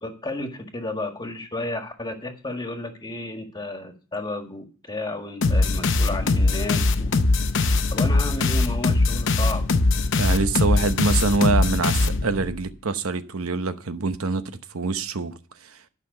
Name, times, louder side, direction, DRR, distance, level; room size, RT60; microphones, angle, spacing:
voice 1, 0.0-7.2 7.9-9.6, left 2 dB, 20° left, 1.7 m, -32 dB
sound 1, 5.4-12.6, left 3 dB, 60° left, 0.8 m, -21 dB
voice 2, 10.2-15.3 15.6-15.8, right 4 dB, 75° right, 0.9 m, -25 dB
11.5 x 5.9 x 6.7 m
head